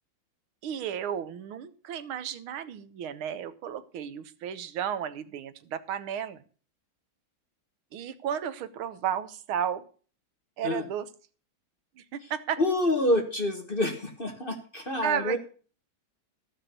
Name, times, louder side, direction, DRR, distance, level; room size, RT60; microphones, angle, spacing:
voice 1, 0.6-6.4 7.9-9.8 10.6-11.1 12.0-12.6 15.0-15.4, right 9 dB, 85° right, 13 dB, 1.8 m, -33 dB
voice 2, 12.6-15.4, left 1 dB, 30° left, 5 dB, 1.3 m, -27 dB
14.0 x 5.8 x 6.7 m, 0.40 s
omnidirectional pair, 2.2 m